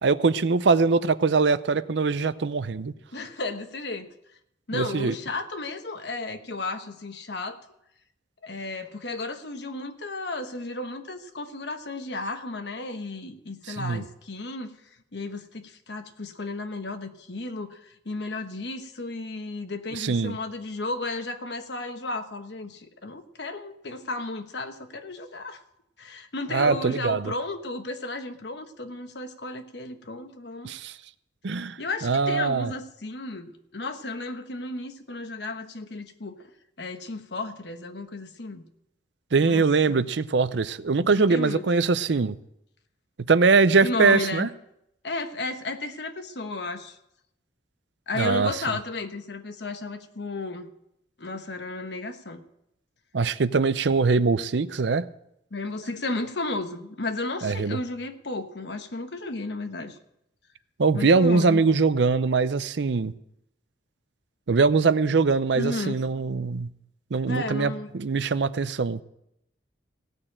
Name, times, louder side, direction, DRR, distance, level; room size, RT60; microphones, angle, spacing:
voice 1, 0.0-2.9 4.7-5.1 13.7-14.0 19.9-20.4 26.5-27.3 30.6-30.9 31.4-32.7 39.3-42.4 43.3-44.5 48.2-48.5 53.1-55.1 57.4-57.8 60.8-63.1 64.5-66.7 67.1-69.0, right 4 dB, 70° right, 15 dB, 0.6 m, -22 dB
voice 2, 3.1-4.1 4.7-7.6 8.4-14.7 15.1-25.6 26.0-30.7 31.8-36.4 36.8-38.6 39.4-40.1 41.0-41.7 43.8-44.5 45.0-47.0 48.1-50.7 51.2-52.4 55.5-60.0 60.9-61.6 65.5-66.1 67.3-67.9, left 2 dB, 65° left, 8 dB, 1.2 m, -33 dB
16.5 x 6.7 x 8.7 m, 0.81 s
head